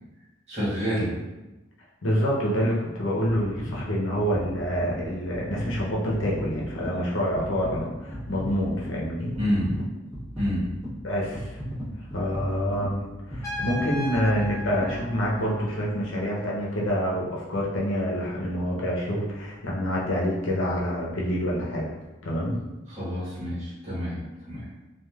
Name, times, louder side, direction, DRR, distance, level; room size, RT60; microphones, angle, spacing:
voice 1, 0.5-1.1 9.4-9.7 10.4-10.7 22.9-24.2 24.5-24.7, equal, 35° right, -10 dB, 1.3 m, -28 dB
voice 2, 2.0-9.4 11.0-11.6 12.1-21.9 22.2-22.6, equal, 85° left, -4 dB, 0.7 m, -27 dB
sound 1, 3.3-15.7 16.2-16.3, equal, 5° right, 1.3 m, -37 dB
Trumpet, 13.4-16.1, left 2 dB, 15° left, 0.9 m, -36 dB
3.2 x 2.4 x 2.3 m, 1.1 s
head